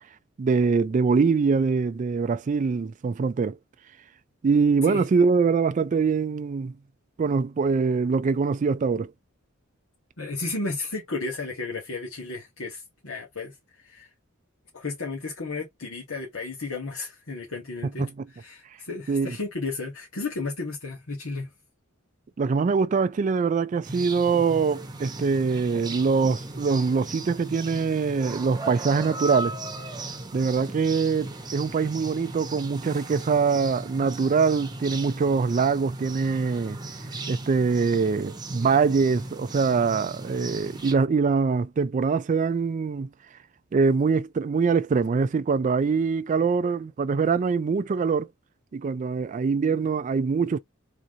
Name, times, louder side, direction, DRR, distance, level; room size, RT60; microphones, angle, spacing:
voice 1, 0.4-3.6 4.4-6.7 7.2-9.1 18.0-18.1 19.1-19.4 22.4-29.5 30.3-36.8 37.3-43.1 43.7-48.3 48.7-50.6, right 5 dB, 40° right, 0.3 m, -23 dB
voice 2, 10.2-13.5 13.8-14.1 14.7-18.1 18.3-21.5, left 3 dB, 80° left, 1.8 m, -33 dB
sound 1, 23.8-40.9, right 2 dB, 20° right, 0.9 m, -37 dB
3.8 x 2.9 x 3.7 m
head